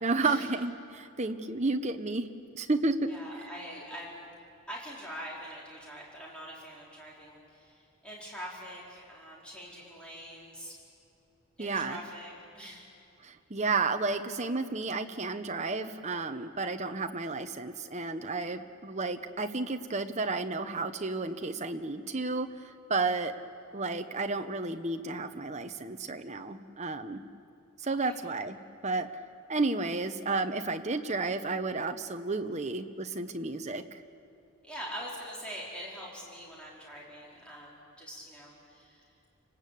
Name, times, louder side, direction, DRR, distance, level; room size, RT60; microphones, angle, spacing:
voice 1, 0.0-2.3 2.5-3.0 11.6-12.0 13.2-22.5 22.9-23.3 23.7-27.2 27.8-28.6 28.8-29.1 29.5-34.0, right 3 dB, 30° right, 7 dB, 1.0 m, -32 dB
voice 2, 3.1-4.2 4.7-10.8 11.6-12.8 28.0-28.1 34.6-39.1, equal, 5° left, -5 dB, 4.5 m, -44 dB
29.5 x 19.5 x 8.5 m, 2.6 s
head